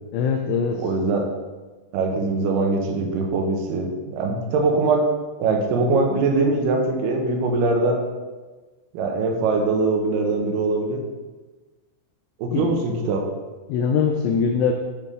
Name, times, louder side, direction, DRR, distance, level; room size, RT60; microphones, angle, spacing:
voice 1, 0.1-0.9 12.5-12.7 13.7-14.7, left 6 dB, 85° left, 3 dB, 2.6 m, -22 dB
voice 2, 0.8-1.3 1.9-5.1 5.4-8.0 8.9-11.0 12.4-13.2, right 3 dB, 80° right, 1 dB, 2.0 m, -22 dB
8.6 x 3.3 x 3.6 m, 1.3 s
omnidirectional pair, 4.9 m